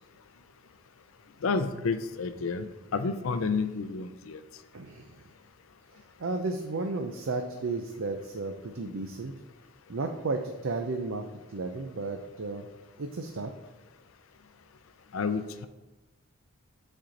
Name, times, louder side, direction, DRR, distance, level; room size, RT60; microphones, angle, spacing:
voice 1, 1.4-4.4 15.1-15.7, left 4 dB, 75° left, 10 dB, 0.5 m, -30 dB
voice 2, 4.7-5.0 6.2-9.3 9.9-11.2 11.5-12.7 13.0-13.5, right 3 dB, 75° right, 5 dB, 0.6 m, -33 dB
7.7 x 4.3 x 5.2 m, 1.1 s
head